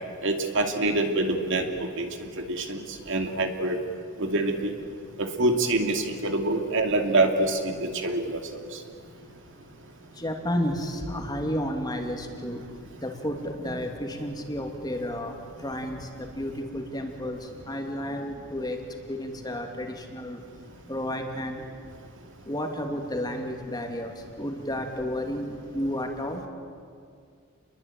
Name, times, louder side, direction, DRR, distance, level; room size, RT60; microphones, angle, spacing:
voice 1, 0.2-3.8 4.2-4.7 5.2-8.4 8.7-8.8, right 2 dB, 60° right, 4 dB, 2.6 m, -26 dB
voice 2, 10.2-12.6 13.0-15.3 15.6-17.4 17.7-18.8 19.1-20.4 20.9-21.6 22.5-24.1 24.4-26.4, equal, 20° left, 3 dB, 2.8 m, -31 dB
29.0 x 22.5 x 9.1 m, 2.2 s
head